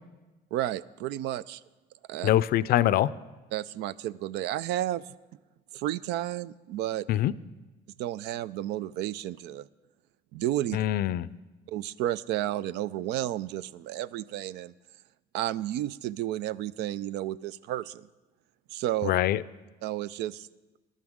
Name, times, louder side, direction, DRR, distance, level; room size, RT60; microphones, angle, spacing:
voice 1, 0.5-1.6 2.1-2.3 3.5-5.1 5.7-7.0 8.0-9.7 10.3-10.8 11.7-14.7 15.3-18.1 18.7-19.1 19.8-20.5, right 13 dB, 80° right, 18 dB, 0.4 m, -32 dB
voice 2, 2.2-3.1 7.1-7.3 10.7-11.3 19.0-19.4, left 13 dB, 65° left, 18 dB, 0.4 m, -24 dB
20.5 x 11.5 x 3.6 m, 1.2 s
cardioid pair, 110°, 17 cm